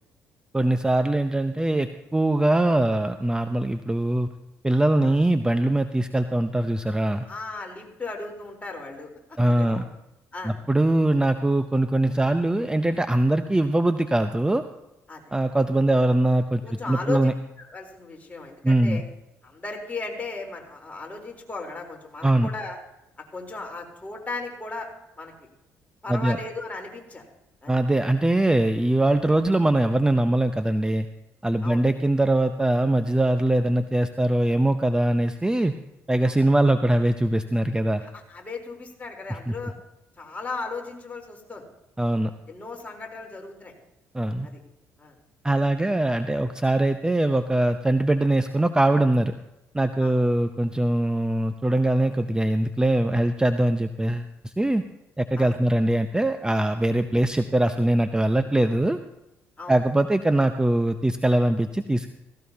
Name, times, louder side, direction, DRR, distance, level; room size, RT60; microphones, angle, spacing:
voice 1, 0.5-4.3 4.6-7.2 9.4-9.8 10.4-14.6 15.3-17.3 18.6-19.0 22.2-22.5 26.1-26.4 27.7-31.1 31.4-35.7 36.1-38.0 39.5-39.6 42.0-42.3 44.1-44.5 45.4-49.3 49.7-54.8 55.2-59.0 59.7-62.1, right 1 dB, 10° right, 9 dB, 0.7 m, -22 dB
voice 2, 7.3-9.1 9.4-9.9 10.3-10.5 15.1-15.2 16.6-17.3 17.7-19.0 19.4-22.8 23.3-24.9 25.2-25.3 26.0-27.3 27.6-27.7 31.6-31.8 36.3-36.4 38.0-39.7 40.2-41.6 42.5-43.7 44.4-44.6 45.0-45.1 50.0-50.1 55.4-55.5 59.6-59.8, left 3 dB, 20° left, 0 dB, 3.9 m, -36 dB
16.5 x 16.0 x 2.9 m, 0.90 s
hypercardioid pair, 50°, 7 cm